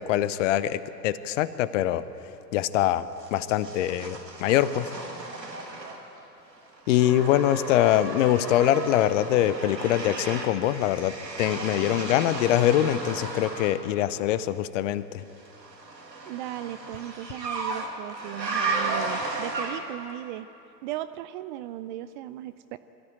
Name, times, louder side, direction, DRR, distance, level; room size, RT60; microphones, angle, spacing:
voice 1, 0.0-2.0 2.5-4.9 6.9-15.2, left 12 dB, 50° left, 15 dB, 0.9 m, -24 dB
sound 1, 3.2-6.2 6.5-13.8 15.4-20.1, right 3 dB, 85° right, 2.5 m, -34 dB
voice 2, 16.3-20.5 20.8-22.8, right 14 dB, 30° right, 13 dB, 0.4 m, -37 dB
23.0 x 14.0 x 9.0 m, 2.8 s
figure-of-eight pair, 95°, 49 cm